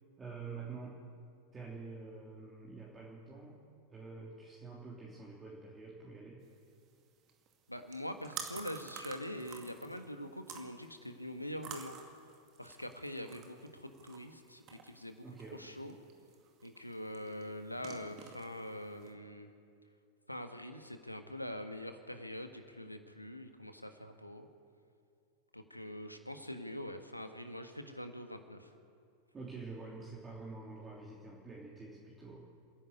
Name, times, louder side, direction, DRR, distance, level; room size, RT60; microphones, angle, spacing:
voice 1, 0.2-1.0 1.5-3.6 3.9-6.4 15.2-15.6 29.3-32.4, right 4 dB, 15° right, -5 dB, 3.3 m, -47 dB
sound 1, 6.4-19.1, right 7 dB, 35° right, 2.3 m, -51 dB
voice 2, 7.7-12.0 12.6-15.2 15.5-15.9 16.6-19.5 20.3-24.5 25.5-28.7, left 1 dB, 90° left, 7 dB, 1.6 m, -44 dB
28.5 x 11.0 x 9.5 m, 2.4 s
figure-of-eight pair, 90°, 0 cm